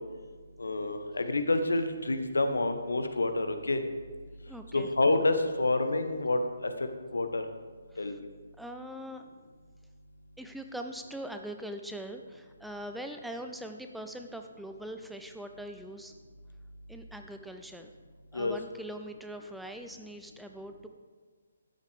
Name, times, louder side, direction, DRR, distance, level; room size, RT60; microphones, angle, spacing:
voice 1, 0.6-3.8 4.7-6.7 7.1-7.4 8.0-8.1 18.3-18.5, left 2 dB, 65° left, 8 dB, 1.0 m, -28 dB
voice 2, 4.5-4.9 7.9-8.2 8.6-9.2 10.4-16.1 16.9-17.9 18.3-20.9, right 1 dB, ahead, 5 dB, 0.4 m, -42 dB
13.0 x 9.8 x 3.5 m, 1.5 s
figure-of-eight pair, 140°, 0 cm